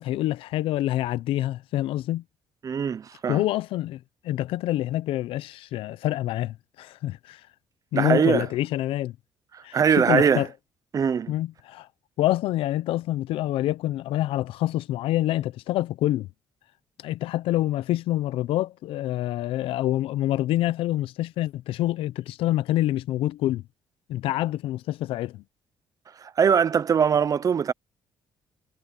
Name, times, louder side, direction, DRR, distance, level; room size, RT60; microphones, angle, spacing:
voice 1, 0.0-2.2 3.3-4.0 4.2-7.4 7.9-9.1 9.6-10.5 11.3-11.9 12.2-16.3 17.0-23.6 24.1-25.4, left 14 dB, 85° left, 0.6 m, -26 dB
voice 2, 2.6-3.4 7.9-8.5 9.5-10.4 10.9-11.3 26.2-27.7, right 7 dB, 40° right, 0.6 m, -22 dB
cardioid pair, 105°, 9 cm